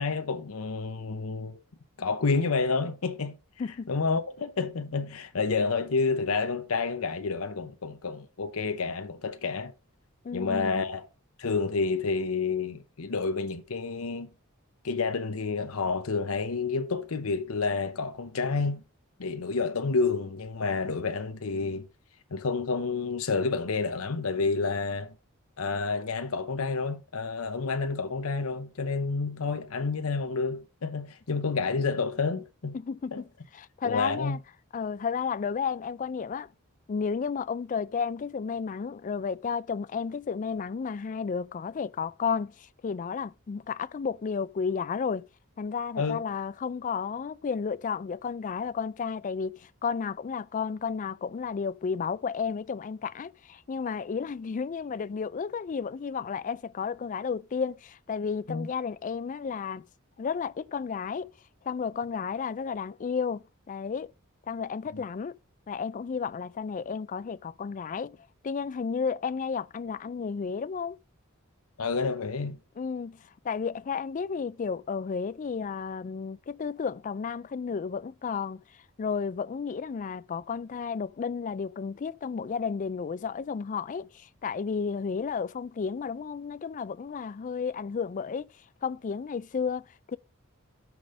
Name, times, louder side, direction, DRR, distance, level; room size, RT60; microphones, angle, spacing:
voice 1, 0.0-1.6 2.0-3.4 3.9-9.7 10.3-11.1 11.4-14.3 14.8-18.8 19.2-21.9 22.3-25.2 25.6-32.8 33.1-33.2 33.8-34.4 46.0-46.2 58.5-58.7 64.9-65.0 71.8-72.6, left 4 dB, 75° left, 0.8 m, -29 dB
voice 2, 3.6-3.9 10.2-10.8 32.7-33.3 33.5-34.4 34.7-36.5 36.9-45.3 45.6-59.8 60.2-61.3 61.6-64.1 64.5-65.3 65.7-68.2 68.4-71.0 72.8-88.5 88.8-90.2, left 6 dB, 35° left, 0.3 m, -32 dB
6.1 x 5.0 x 6.2 m
head